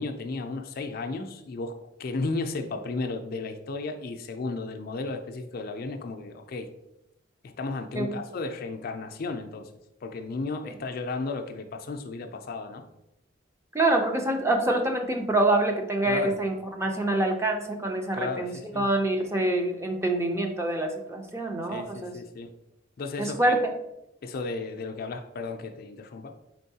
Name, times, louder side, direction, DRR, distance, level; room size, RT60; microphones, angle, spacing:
voice 1, 0.0-6.7 7.4-9.7 10.0-12.8 16.0-16.4 18.1-18.9 21.7-22.5 23.0-23.6 24.2-26.4, left 3 dB, 50° left, 6 dB, 0.4 m, -34 dB
voice 2, 13.7-22.2 23.2-23.7, right 1 dB, 15° right, 3 dB, 0.5 m, -26 dB
4.4 x 3.9 x 2.7 m, 0.85 s
head